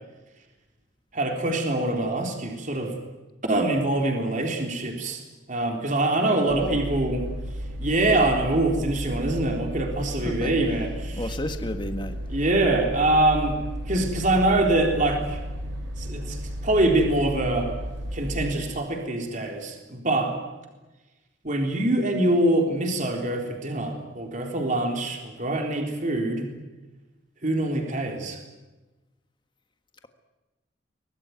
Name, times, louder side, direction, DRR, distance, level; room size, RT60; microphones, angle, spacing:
voice 1, 1.1-2.9 3.4-5.2 5.5-7.3 7.8-11.4 12.3-13.6 13.9-15.4 16.0-16.4 16.6-17.7 18.1-20.4 21.4-26.5 27.4-28.4, right 2 dB, 45° right, 2 dB, 3.8 m, -24 dB
voice 2, 6.5-6.8 10.2-10.5 11.1-12.1, left 1 dB, 25° left, 7 dB, 1.6 m, -31 dB
sound 1, 6.5-18.5, equal, 80° right, 5.7 m, -34 dB
23.5 x 20.5 x 9.6 m, 1.1 s
head